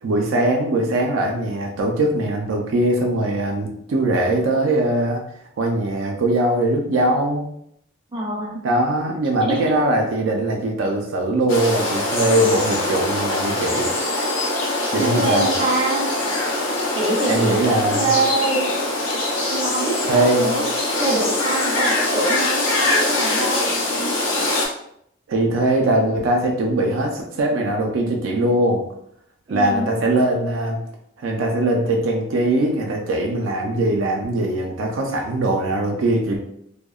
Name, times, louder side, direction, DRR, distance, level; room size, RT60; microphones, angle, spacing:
voice 1, 0.0-5.2 5.6-7.5 8.6-13.9 14.9-15.5 17.2-18.1 20.0-20.5 25.3-28.8 29.5-30.8 31.2-36.4, right 1 dB, 75° right, 1 dB, 0.4 m, -21 dB
voice 2, 8.1-8.6 9.5-9.6 11.8-12.0 15.0-16.1 16.9-17.5 17.9-18.7 19.5-20.7 21.0-23.7 29.5-30.0, right 2 dB, 25° right, -3 dB, 0.6 m, -24 dB
sound 1, 11.5-24.7, left 2 dB, 85° left, 0.6 m, -23 dB
sound 2, 15.4-22.6, left 2 dB, 25° left, 0.4 m, -41 dB
2.7 x 2.0 x 2.3 m, 0.71 s
head